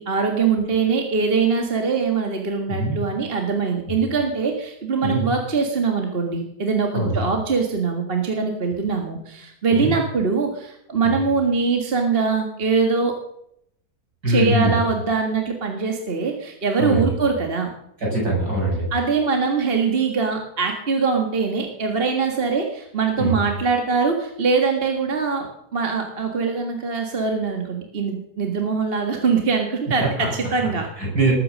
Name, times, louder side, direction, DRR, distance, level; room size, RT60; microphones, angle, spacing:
voice 1, 0.0-13.2 14.3-17.7 18.9-30.9, right 5 dB, 35° right, 3 dB, 1.9 m, -22 dB
voice 2, 14.2-14.8 16.8-17.1 18.0-18.9 23.2-23.3 30.2-30.3 31.0-31.3, right 1 dB, 65° right, -4 dB, 8.2 m, -22 dB
20.0 x 8.7 x 6.5 m, 0.74 s
omnidirectional pair, 1.7 m